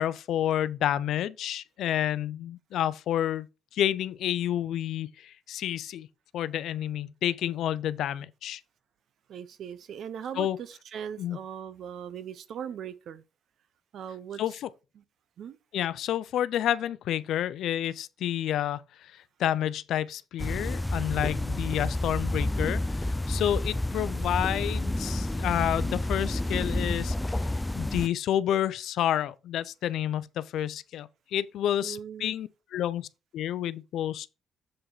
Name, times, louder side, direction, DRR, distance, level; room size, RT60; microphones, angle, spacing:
voice 1, 0.0-3.5 3.7-6.1 6.3-8.6 10.4-10.6 11.2-11.4 14.4-14.7 15.7-27.5 27.7-33.1 33.3-34.3, left 11 dB, 80° left, 0.5 m, -29 dB
voice 2, 9.3-13.2 13.9-14.4 15.0-15.1 15.4-15.6 31.8-32.3, right 8 dB, 65° right, 0.7 m, -39 dB
sound 1, 20.4-28.1, left 1 dB, 10° left, 0.3 m, -30 dB
7.4 x 4.8 x 4.8 m
cardioid pair, 90°, 0 cm